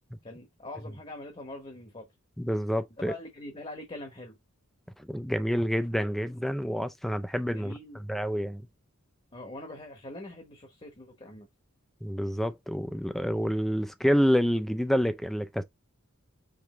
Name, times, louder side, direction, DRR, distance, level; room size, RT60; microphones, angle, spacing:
voice 1, 0.2-2.1 3.0-4.4 7.3-8.0 9.3-11.5, left 2 dB, 25° left, 1.0 m, -43 dB
voice 2, 2.4-3.1 5.1-8.6 12.0-15.6, equal, ahead, 0.4 m, -28 dB
5.1 x 3.1 x 3.1 m
head